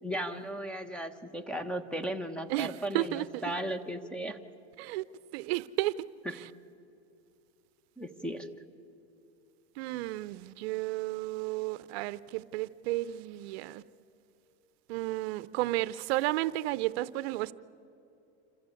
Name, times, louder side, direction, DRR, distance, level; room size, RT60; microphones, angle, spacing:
voice 1, 0.0-4.4 8.0-8.5, right 1 dB, 5° left, 1.1 m, -36 dB
voice 2, 2.5-3.5 4.8-5.0 5.3-5.9 6.3-6.5 9.8-13.8 14.9-17.5, right 17 dB, 65° right, 0.6 m, -33 dB
27.0 x 14.5 x 8.4 m
supercardioid pair, 135°, 34 cm